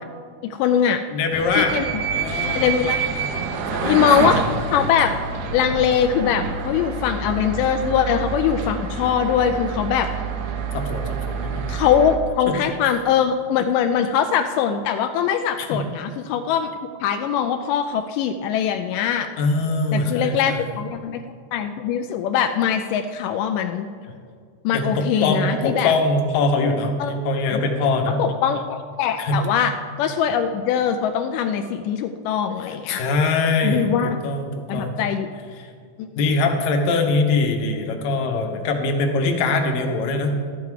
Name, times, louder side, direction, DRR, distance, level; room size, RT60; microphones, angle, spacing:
voice 1, 0.4-1.0 1.6-1.8 2.4-3.0 3.9-5.2 5.5-10.1 11.7-16.7 17.0-19.3 19.9-21.2 21.5-23.9 24.6-25.9 27.0-27.1 27.5-27.6 28.1-29.7 30.0-33.0 33.6-34.2 34.7-35.3 36.0-36.1, left 8 dB, 85° left, 6 dB, 2.1 m, -22 dB
voice 2, 1.1-1.8 2.1-2.7 3.7-4.0 10.7-11.7 12.5-12.6 15.6-15.8 19.4-20.7 24.7-28.2 29.2-29.4 32.7-35.1 35.6-35.7 36.2-40.4, left 3 dB, 70° left, 3 dB, 2.2 m, -22 dB
sound 1, 1.3-12.2, right 5 dB, 75° right, 2.2 m, -27 dB
12.5 x 9.2 x 4.7 m, 2.1 s
omnidirectional pair, 3.7 m